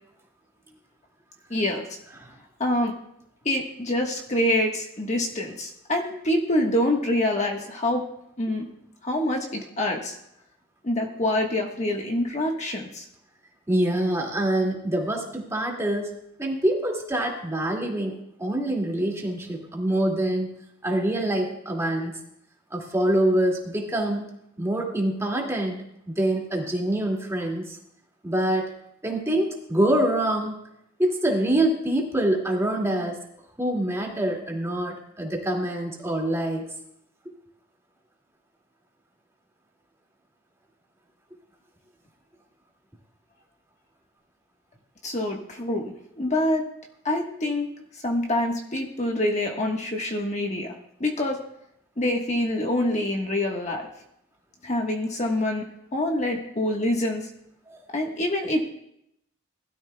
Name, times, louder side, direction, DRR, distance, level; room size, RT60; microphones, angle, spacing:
voice 1, 1.5-2.0 2.6-2.9 3.4-8.0 8.4-8.7 9.0-10.1 10.8-13.0 45.0-46.7 47.0-47.7 48.0-50.7 51.0-51.4 52.0-53.9 54.6-55.6 55.9-57.3 57.9-58.7, left 1 dB, 35° left, 1 dB, 1.3 m, -26 dB
voice 2, 13.7-16.1 16.4-18.1 18.4-20.5 20.8-22.2 22.7-27.8 28.2-28.7 29.0-30.5 31.0-33.2 33.6-36.6 57.7-57.8, right 1 dB, 15° right, -1 dB, 2.2 m, -25 dB
20.5 x 12.5 x 2.3 m, 0.76 s
head